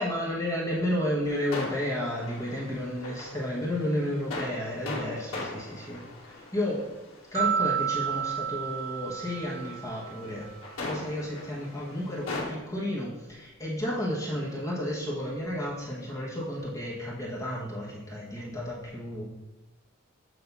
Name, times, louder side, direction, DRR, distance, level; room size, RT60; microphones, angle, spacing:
voice 1, 0.0-6.9 7.3-10.5 10.8-19.2, left 1 dB, 15° left, -5 dB, 1.2 m, -32 dB
sound 1, 1.2-12.5, left 2 dB, 85° left, 1.9 m, -40 dB
sound 2, 7.3-10.5, right 8 dB, 30° right, 1.4 m, -31 dB
8.2 x 2.8 x 5.3 m, 0.99 s
head